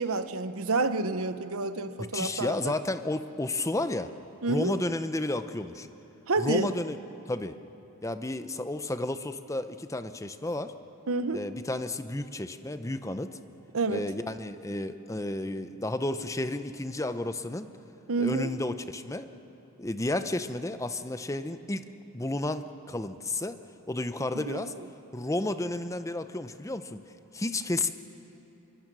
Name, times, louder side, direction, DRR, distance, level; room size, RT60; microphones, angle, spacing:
voice 1, 0.0-2.7 4.4-4.8 6.3-6.7 11.1-11.4 13.7-14.0 18.1-18.5 24.3-24.6, right 3 dB, 70° right, 11 dB, 0.9 m, -29 dB
voice 2, 2.1-4.1 4.5-5.9 6.4-7.0 7.3-7.6 8.0-10.7 11.3-13.3 13.9-17.7 18.2-19.3 19.8-21.8 22.1-23.6 23.9-24.7 25.1-27.0 27.3-27.9, left 2 dB, 15° left, 10 dB, 0.7 m, -32 dB
25.0 x 23.5 x 6.2 m, 2.9 s
head